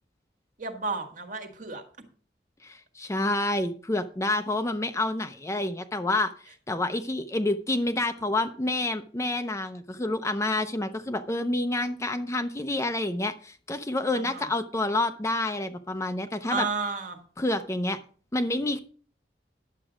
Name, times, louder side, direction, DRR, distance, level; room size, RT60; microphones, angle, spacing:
voice 1, 0.6-1.8 14.1-14.5 16.5-17.2, right 4 dB, 50° right, 5 dB, 1.6 m, -32 dB
voice 2, 2.6-16.7 17.4-18.0 18.3-18.8, left 2 dB, 15° left, 8 dB, 0.6 m, -28 dB
11.0 x 7.5 x 5.0 m, 0.42 s
head